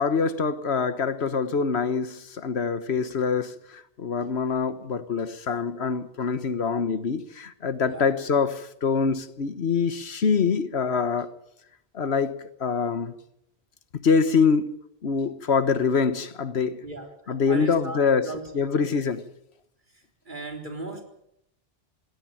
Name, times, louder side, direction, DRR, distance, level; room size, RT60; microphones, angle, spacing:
voice 1, 0.0-11.3 11.9-13.1 13.9-14.7 15.0-16.8 17.3-18.3 18.5-19.2, left 5 dB, 85° left, 1.5 m, -25 dB
voice 2, 16.8-18.9 19.9-21.0, right 2 dB, 50° right, 4.2 m, -38 dB
20.0 x 17.0 x 9.1 m
omnidirectional pair, 1.1 m